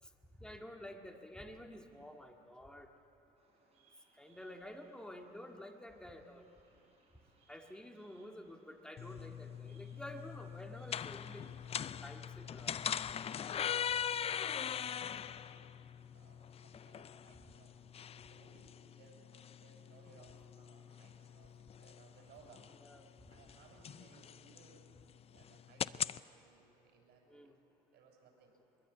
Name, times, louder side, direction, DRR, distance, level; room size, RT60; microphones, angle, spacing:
voice 1, 0.4-2.9 4.2-6.5 7.5-11.5 11.9-12.8 22.8-23.1 27.3-27.6, left 1 dB, 5° left, 3 dB, 2.0 m, -50 dB
Bird vocalization bird call bird song, 3.4-15.5, right 3 dB, 35° right, 6.7 m, -71 dB
sound 1, 9.0-26.2, left 8 dB, 35° left, 0.4 m, -42 dB
voice 2, 14.3-15.7 16.1-17.7 18.1-22.6 23.3-24.8 25.3-27.5 27.9-28.5, right 5 dB, 70° right, 0 dB, 6.9 m, -64 dB
22.5 x 22.5 x 8.4 m, 3.0 s
cardioid pair, 110°, 17 cm